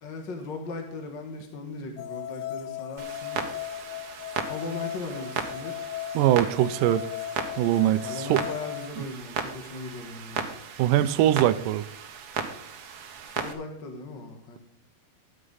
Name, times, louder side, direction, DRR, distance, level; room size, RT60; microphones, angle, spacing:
voice 1, 0.0-3.4 3.7-3.9 4.4-5.9 8.0-10.4 13.3-14.6, left 3 dB, 55° left, 3 dB, 1.2 m, -38 dB
sound 1, 2.0-8.9, left 12 dB, 80° left, 2.2 m, -37 dB
Clock, 3.0-13.5, right 7 dB, 60° right, 1.8 m, -36 dB
voice 2, 6.2-7.0 7.6-8.4 9.0-9.1 10.8-11.9, right 13 dB, 80° right, 12 dB, 1.9 m, -22 dB
13.0 x 9.2 x 3.9 m, 0.72 s
omnidirectional pair, 4.5 m